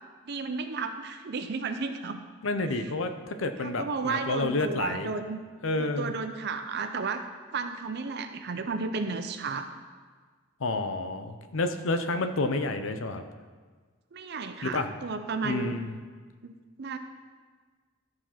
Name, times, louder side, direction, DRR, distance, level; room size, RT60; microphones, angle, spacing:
voice 1, 0.3-2.2 3.6-5.4 5.8-7.3 7.5-9.7 14.1-15.8 16.4-16.5 16.8-17.0, right 4 dB, 55° right, 8 dB, 0.5 m, -33 dB
voice 2, 2.4-5.1 5.6-6.1 10.6-13.2 14.6-14.9 15.4-16.0, left 2 dB, 70° left, 8 dB, 0.7 m, -29 dB
12.5 x 4.8 x 5.7 m, 1.5 s
head